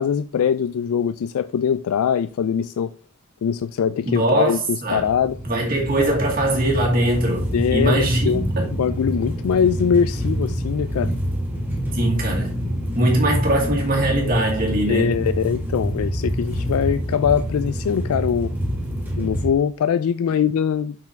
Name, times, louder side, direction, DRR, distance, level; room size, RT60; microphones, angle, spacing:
voice 1, 0.0-2.9 3.4-5.4 7.5-11.1 14.9-18.5 19.2-21.0, left 7 dB, 80° left, 0.3 m, -22 dB
voice 2, 4.1-4.5 4.8-5.1 5.5-8.7 11.9-12.6 13.0-15.1, right 1 dB, 40° right, 2.2 m, -21 dB
sound 1, 4.9-19.5, equal, 10° right, 1.5 m, -26 dB
5.9 x 4.6 x 4.4 m
head